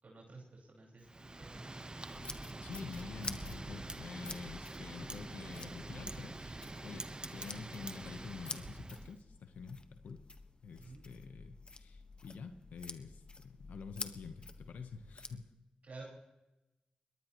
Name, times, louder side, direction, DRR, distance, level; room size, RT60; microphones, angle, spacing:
voice 1, 0.0-1.7 10.8-11.0 15.8-16.0, right 3 dB, 65° right, -3 dB, 5.3 m, -52 dB
Wind, 1.0-9.2, right 2 dB, 35° right, 1.1 m, -46 dB
sound 1, 2.1-15.4, left 3 dB, 40° left, 1.4 m, -50 dB
voice 2, 2.6-10.2 10.6-15.5, left 5 dB, 90° left, 7 dB, 1.0 m, -48 dB
22.0 x 19.0 x 3.1 m, 0.98 s
cardioid pair, 45°, 3 cm